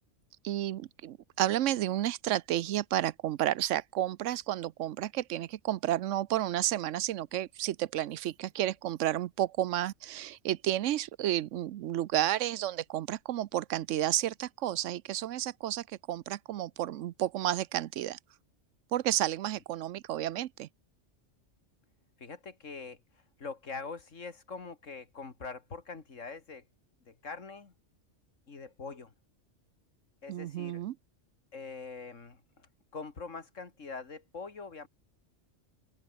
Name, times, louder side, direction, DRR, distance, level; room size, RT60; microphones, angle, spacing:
voice 1, 0.4-18.2 18.9-20.7 30.3-31.0, right 13 dB, 85° right, 1.0 m, -31 dB
voice 2, 22.2-26.6 27.1-27.7 28.5-29.1 30.2-30.8 31.5-34.9, left 4 dB, 85° left, 2.7 m, -43 dB
omnidirectional pair, 1.3 m